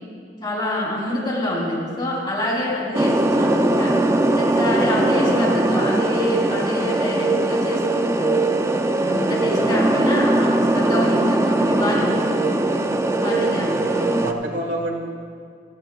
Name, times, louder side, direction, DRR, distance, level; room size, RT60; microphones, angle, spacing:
voice 1, 0.4-3.9 4.3-8.4 9.0-12.6 13.2-14.3, left 1 dB, 25° left, -5 dB, 3.3 m, -26 dB
sound 1, 2.9-14.3, right 2 dB, 15° right, 0.4 m, -20 dB
voice 2, 13.4-14.9, right 1 dB, 90° right, 1 dB, 1.7 m, -31 dB
16.5 x 14.0 x 2.3 m, 2.2 s
head